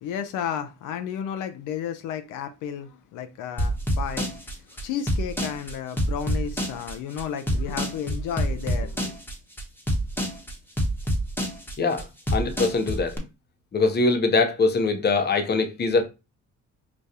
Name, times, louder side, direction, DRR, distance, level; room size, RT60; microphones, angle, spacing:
voice 1, 0.0-4.3 4.8-9.0, left 8 dB, 90° left, 0.5 m, -32 dB
sound 1, 3.6-13.2, equal, 5° left, 0.9 m, -26 dB
voice 2, 11.8-13.2 13.7-16.1, left 3 dB, 35° left, 0.7 m, -23 dB
5.0 x 2.3 x 2.7 m
cardioid pair, 90°, 30 cm